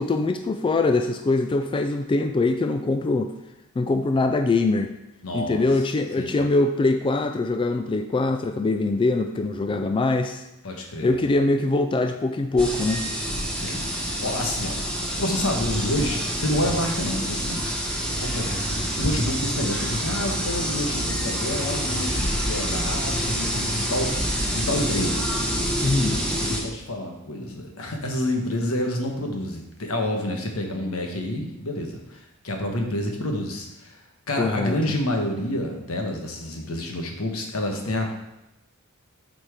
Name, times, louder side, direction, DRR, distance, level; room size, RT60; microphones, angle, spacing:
voice 1, 0.0-3.3 3.8-4.9 5.3-10.4 11.0-13.0 25.8-26.2 34.4-34.8, left 2 dB, 25° left, 6 dB, 0.3 m, -23 dB
voice 2, 5.2-5.6 6.2-6.4 10.6-11.2 13.5-14.8 15.2-17.7 18.2-25.3 26.4-38.1, left 1 dB, 80° left, 2 dB, 1.3 m, -28 dB
sound 1, 12.6-26.6, equal, 5° left, 1.2 m, -27 dB
7.4 x 4.4 x 4.9 m, 0.95 s
head